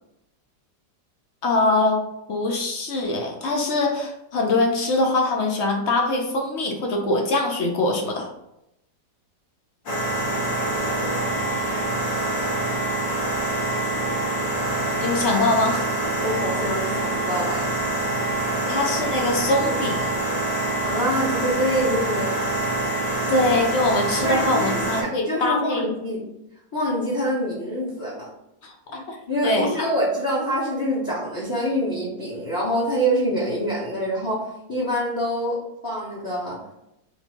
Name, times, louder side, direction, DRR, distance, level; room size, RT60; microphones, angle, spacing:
voice 1, 1.4-2.0 2.3-8.3 15.0-15.9 18.7-20.0 23.3-25.8 28.6-28.7 29.1-29.2 29.4-29.8, left 2 dB, 60° left, 1 dB, 0.7 m, -23 dB
sound 1, 9.9-25.0, right 2 dB, 90° left, 2.0 m, -25 dB
voice 2, 16.2-17.7 20.8-22.7 23.2-23.3 24.2-26.2 26.7-28.3 28.9-35.6 35.8-36.6, equal, 15° left, -5 dB, 0.8 m, -26 dB
4.3 x 2.7 x 4.3 m, 0.85 s
omnidirectional pair, 1.9 m